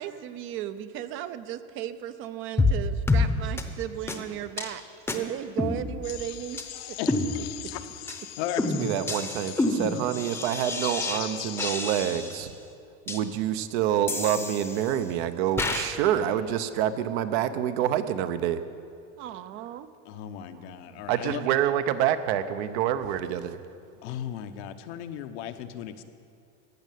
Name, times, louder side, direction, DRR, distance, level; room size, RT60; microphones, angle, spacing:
voice 1, 0.0-4.8 5.1-6.6 6.9-7.0 19.2-19.9, right 11 dB, 35° right, 13 dB, 0.5 m, -35 dB
sound 1, 2.6-2.8 3.1-3.3 3.6-3.7 4.1-4.2 4.6-4.7 5.1-5.2 5.6-6.2 6.6-6.7 7.1-7.7 8.1-8.2 8.6-11.2 11.6-12.5 13.1-13.2 14.1-15.0 15.6-15.9, left 3 dB, 5° left, 0.8 m, -28 dB
sound 2, 6.0-11.8, left 14 dB, 50° left, 0.7 m, -40 dB
voice 2, 7.0-7.3 7.7-7.8 8.4-8.6 20.0-21.5 24.0-26.0, left 11 dB, 75° left, 8 dB, 1.0 m, -36 dB
voice 3, 8.8-12.5 13.1-18.6 21.1-23.6, right 10 dB, 70° right, 11 dB, 0.9 m, -27 dB
15.0 x 6.6 x 9.2 m, 2.4 s
supercardioid pair, 150°, 34 cm